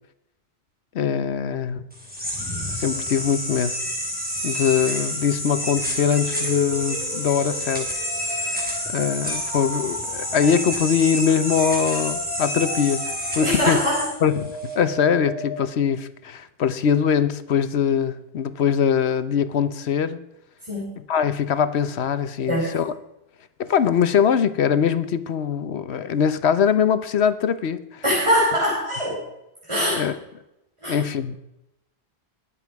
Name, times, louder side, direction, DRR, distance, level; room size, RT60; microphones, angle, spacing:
voice 1, 0.9-1.8 2.7-3.8 4.4-7.9 8.3-13.8 14.2-20.2 21.1-22.9 23.6-28.0 29.9-30.2 30.9-31.4, left 7 dB, 80° left, 1.1 m, -22 dB
sound 1, 1.9-14.8, equal, 10° right, 3.9 m, -29 dB
sound 2, 6.0-15.6, left 1 dB, 40° left, 3.2 m, -36 dB
voice 2, 13.4-14.0 20.7-20.9 22.5-22.7 28.0-29.2 29.6-30.0 30.8-31.0, equal, 30° right, 4.0 m, -22 dB
22.0 x 7.6 x 4.7 m
omnidirectional pair, 1.1 m